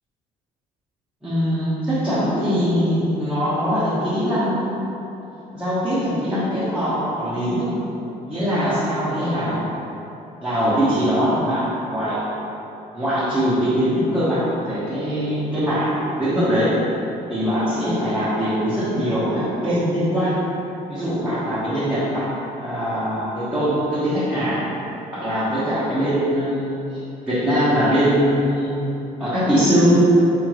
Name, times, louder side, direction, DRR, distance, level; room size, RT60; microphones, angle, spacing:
voice 1, 1.2-4.6 5.5-7.7 8.3-9.7 10.4-12.2 12.9-16.8 17.3-20.4 20.9-22.3 22.6-24.7 25.1-26.8 27.3-28.8 29.2-30.1, equal, 5° right, -14 dB, 1.2 m, -21 dB
3.5 x 3.5 x 3.1 m, 2.9 s
supercardioid pair, 80°, 18 cm